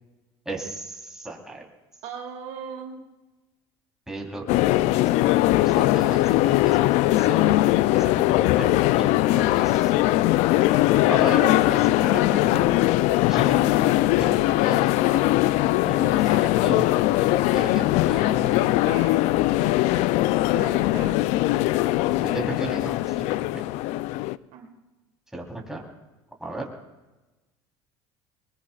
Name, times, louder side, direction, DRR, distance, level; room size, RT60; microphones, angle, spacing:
voice 1, 0.5-1.7 4.1-4.4 4.8-5.3 5.5-7.5 7.9-10.2 11.1-12.9 13.3-13.9 14.2-15.3 15.8-16.9 17.2-18.9 22.2-23.3 23.5-23.6 25.3-25.8 26.4-26.7, right 2 dB, 5° right, -1 dB, 3.6 m, -35 dB
voice 2, 2.0-3.0 9.2-9.5 16.2-16.7 18.6-19.3 19.6-20.2 20.5-21.2 24.5-24.7, right 7 dB, 65° right, 3 dB, 2.2 m, -39 dB
sound 1, 4.5-24.4, left 16 dB, 70° left, 0.4 m, -21 dB
22.5 x 21.5 x 2.4 m, 1.1 s
supercardioid pair, 85°, 12 cm